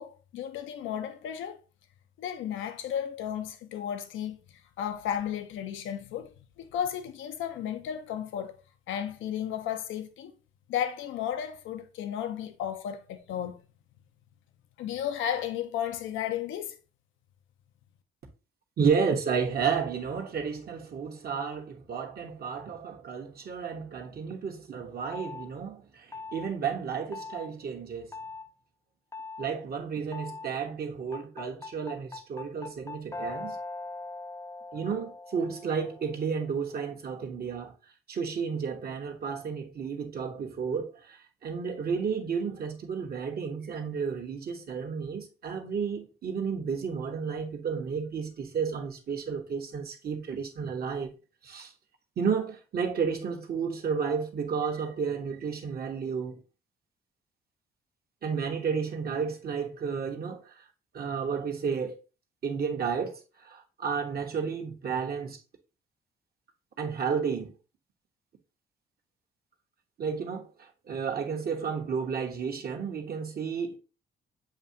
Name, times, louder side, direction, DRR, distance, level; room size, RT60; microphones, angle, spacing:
voice 1, 0.0-1.6 2.2-4.4 4.8-8.6 8.9-10.3 10.7-13.6 14.8-16.8, left 9 dB, 85° left, 0.6 m, -34 dB
voice 2, 18.8-28.1 29.4-33.6 34.7-37.7 38.1-51.1 51.4-51.7 52.2-56.4 58.2-60.6 60.9-61.9 62.4-65.4 66.8-67.5 70.0-73.8, right 6 dB, 50° right, 1.1 m, -32 dB
sound 1, 25.1-25.5 26.1-26.5 27.1-27.5 28.1-28.4 29.1-29.5 30.1-30.5 31.1-36.2, left 3 dB, 15° left, 0.5 m, -40 dB
7.2 x 2.7 x 2.7 m
cardioid pair, 90°, 20 cm